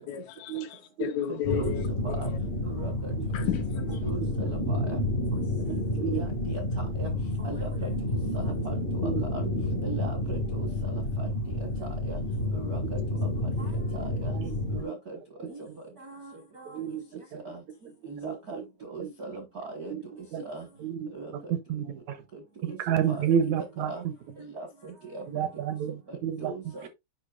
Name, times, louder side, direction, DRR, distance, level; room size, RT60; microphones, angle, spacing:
voice 1, 0.0-1.9 3.3-4.0, left 10 dB, 80° left, 1.7 m, -33 dB
voice 2, 1.3-2.3 2.6-3.4 4.0-5.0 5.7-7.1 7.4-9.5 9.8-11.3 11.6-12.2 12.5-13.0 13.6-14.4 14.7-15.7 16.0-16.8 17.4-17.6 18.1-20.0 20.4-20.7 21.1-21.3 22.7-22.8 23.1-23.3 23.6-24.0 24.4-25.2 26.1-26.9, right 3 dB, 60° right, 0.9 m, -40 dB
sound 1, 1.4-14.8, left 1 dB, 60° left, 0.5 m, -30 dB
voice 3, 5.7-6.2 9.0-9.2 14.3-14.9 16.7-17.0 17.3-17.4 18.2-18.6 19.0-19.1 19.9-20.0 20.3-20.4 20.8-22.2 22.6-24.1 25.3-25.9 26.2-26.5, right 8 dB, 75° right, 1.9 m, -30 dB
8.2 x 5.5 x 2.3 m
omnidirectional pair, 3.6 m